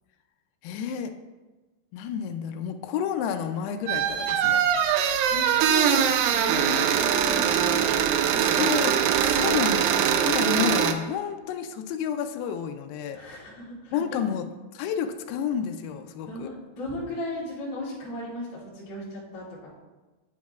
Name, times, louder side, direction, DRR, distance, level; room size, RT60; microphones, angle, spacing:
voice 1, 0.6-1.1 1.9-4.6 8.4-13.2 13.9-14.5 14.7-16.5, left 8 dB, 85° left, 6 dB, 2.3 m, -30 dB
sound 1, 3.9-10.9, right 9 dB, 85° right, 2.3 m, -22 dB
voice 2, 5.2-8.8 13.1-13.9 16.3-19.8, left 1 dB, 40° left, -9 dB, 2.7 m, -36 dB
9.1 x 8.3 x 2.4 m, 1.2 s
omnidirectional pair, 5.2 m